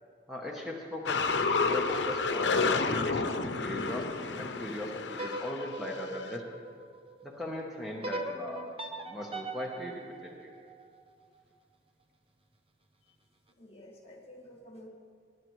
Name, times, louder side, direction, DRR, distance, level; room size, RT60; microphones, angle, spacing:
voice 1, 0.3-1.2 1.6-6.6 7.2-8.7 9.1-10.5, left 1 dB, ahead, -2 dB, 0.9 m, -39 dB
sound 1, 1.1-5.8 6.1-6.2, left 4 dB, 85° left, 0.7 m, -30 dB
sound 2, 5.1-7.3 8.0-11.2, right 2 dB, 30° right, 0.8 m, -41 dB
voice 2, 13.6-14.9, left 1 dB, 35° left, 0 dB, 2.1 m, -50 dB
19.0 x 10.5 x 3.1 m, 2.1 s
head